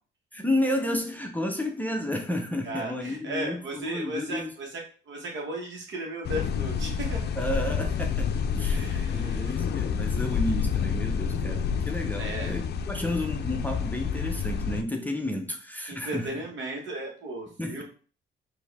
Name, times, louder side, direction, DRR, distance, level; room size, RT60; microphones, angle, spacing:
voice 1, 0.3-4.5 7.4-16.3 17.6-17.8, left 1 dB, 10° left, 2 dB, 0.6 m, -31 dB
voice 2, 2.6-7.3 8.7-9.5 12.2-12.6 15.9-17.8, right 1 dB, 70° right, 0 dB, 1.4 m, -36 dB
sound 1, 6.2-14.8, left 6 dB, 55° left, 0.4 m, -28 dB
4.3 x 2.7 x 3.5 m, 0.40 s
cardioid pair, 90°, 20 cm